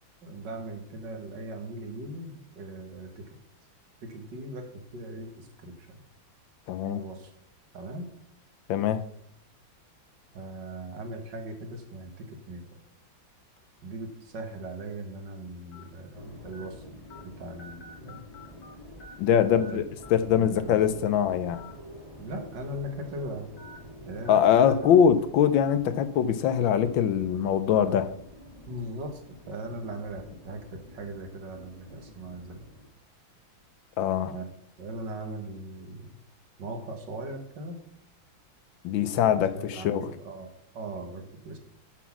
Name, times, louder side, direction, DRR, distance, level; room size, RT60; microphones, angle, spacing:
voice 1, 0.2-3.2 4.0-6.0 6.9-7.3 7.7-8.1 10.3-12.6 13.8-16.8 17.2-18.3 19.5-19.8 20.3-20.9 22.2-23.5 24.1-24.4 24.7-24.8 28.7-29.2 29.5-32.6 34.3-34.5 34.8-36.2 36.6-37.8 39.0-39.1 39.3-41.6, right 1 dB, 65° right, 5 dB, 2.0 m, -39 dB
voice 2, 6.7-7.0 8.7-9.0 19.2-19.8 20.1-21.6 24.3-28.1 34.0-34.3 38.8-40.1, left 8 dB, 75° left, 12 dB, 1.4 m, -23 dB
sound 1, 13.6-13.8 14.5-14.6 15.7-15.8 16.5-16.6 17.1-17.2 17.6-18.7 19.0-19.7 20.0-20.1 21.4-21.7 22.1-22.2 23.6-23.8 24.2-24.4 24.8-25.0 25.6-25.7, left 1 dB, 50° left, 1.7 m, -48 dB
sound 2, 16.1-32.9, left 1 dB, 20° left, 1.7 m, -48 dB
10.0 x 6.0 x 5.9 m, 0.69 s
omnidirectional pair, 2.2 m